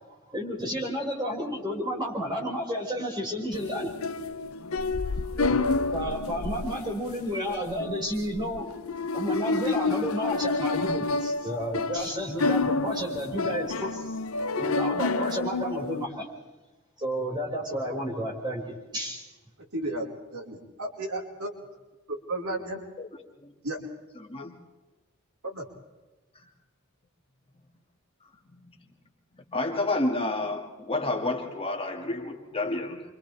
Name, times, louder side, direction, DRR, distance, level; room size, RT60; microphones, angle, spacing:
voice 1, 0.3-3.9 5.3-8.7 9.1-14.1 14.5-16.3 17.0-19.3, equal, 20° right, -2 dB, 6.2 m, -31 dB
sound 1, 3.5-16.1, left 3 dB, 70° left, 0.8 m, -29 dB
voice 2, 19.7-21.5 22.1-22.8 23.6-23.8 25.4-25.6, right 1 dB, 85° right, -2 dB, 5.1 m, -33 dB
voice 3, 24.2-24.5 29.5-33.0, left 2 dB, 25° left, 1 dB, 2.3 m, -30 dB
29.0 x 26.0 x 3.5 m, 1.1 s
head